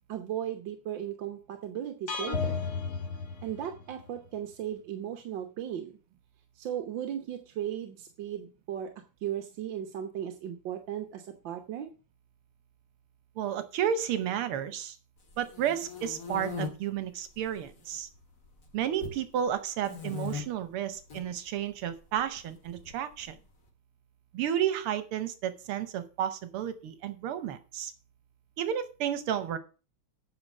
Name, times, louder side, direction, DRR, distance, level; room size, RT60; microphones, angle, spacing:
voice 1, 0.1-2.6 3.4-5.9 6.5-8.9 9.2-11.9, right 10 dB, 65° right, 6 dB, 1.6 m, -36 dB
sound 1, 2.1-4.1, left 4 dB, 70° left, 2.5 m, -33 dB
voice 2, 13.4-15.0 15.4-18.1 18.7-23.4 24.3-27.9 28.6-29.6, right 9 dB, 80° right, 12 dB, 1.8 m, -32 dB
sound 2, 15.3-16.7 17.3-18.0 18.2-19.2 19.8-20.4 21.0-21.2 22.3-23.3, left 5 dB, 40° left, 2.2 m, -38 dB
8.7 x 5.8 x 7.2 m, 0.34 s
omnidirectional pair, 2.4 m